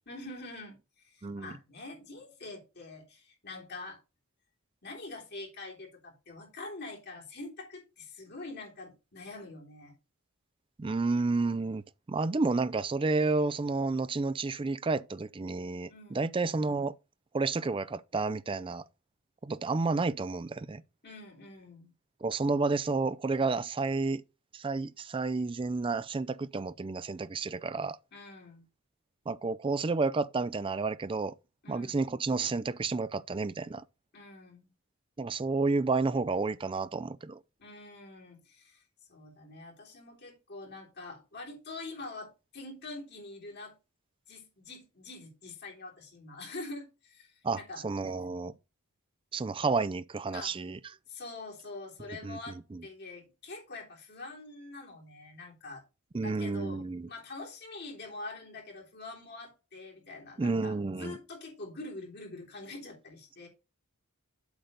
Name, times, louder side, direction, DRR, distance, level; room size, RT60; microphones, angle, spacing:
voice 1, 0.1-4.0 4.8-10.0 15.9-16.3 21.0-21.9 28.1-28.6 31.6-32.0 34.1-34.7 37.6-38.8 39.1-43.8 44.3-47.9 50.3-50.6 51.1-55.8 56.1-63.5, left 2 dB, 50° left, 3.3 m, -45 dB
voice 2, 1.2-1.5 10.8-11.8 12.1-16.9 17.3-18.8 19.4-20.8 22.2-24.2 24.5-28.0 29.3-31.3 31.7-33.8 35.2-37.4 47.4-48.5 49.3-50.8 52.2-52.4 52.7-52.8 56.1-57.1 60.4-61.2, right 3 dB, 25° right, 0.4 m, -30 dB
8.1 x 3.9 x 6.5 m
head